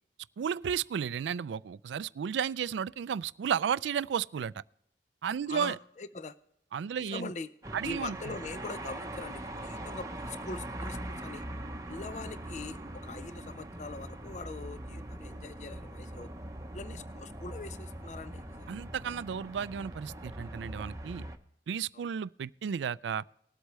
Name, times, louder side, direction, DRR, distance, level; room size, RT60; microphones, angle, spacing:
voice 1, 0.4-4.5 5.2-5.8 6.7-7.3 7.7-8.2 18.7-21.2 21.7-23.2, right 7 dB, 90° right, 0.3 m, -33 dB
voice 2, 5.5-6.4 7.0-7.5 7.8-11.4 11.9-16.3 16.7-18.7 21.9-22.1, left 3 dB, 40° left, 0.5 m, -42 dB
sound 1, 7.6-21.4, right 1 dB, 20° right, 0.8 m, -42 dB
19.5 x 8.1 x 3.1 m
head